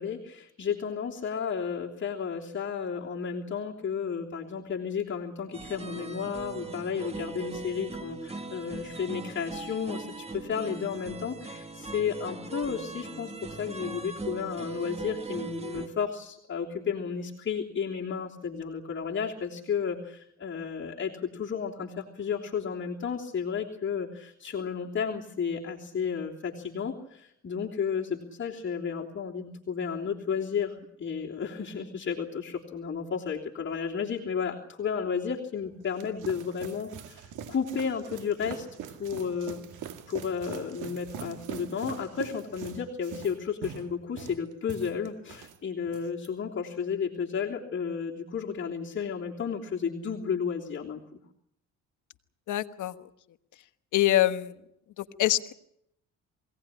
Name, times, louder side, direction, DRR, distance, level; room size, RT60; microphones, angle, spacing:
voice 1, 0.0-39.6 40.1-51.2, left 6 dB, 40° left, -3 dB, 3.2 m, -33 dB
sound 1, 5.5-15.9, right 3 dB, 20° right, 2.2 m, -40 dB
sound 2, 35.6-45.6 45.9-46.3, right 8 dB, 85° right, 2.1 m, -42 dB
voice 2, 52.5-52.9 53.9-54.5 55.0-55.5, left 14 dB, 80° left, 9 dB, 1.3 m, -25 dB
22.5 x 17.5 x 9.9 m, 0.74 s
cardioid pair, 90°, 30 cm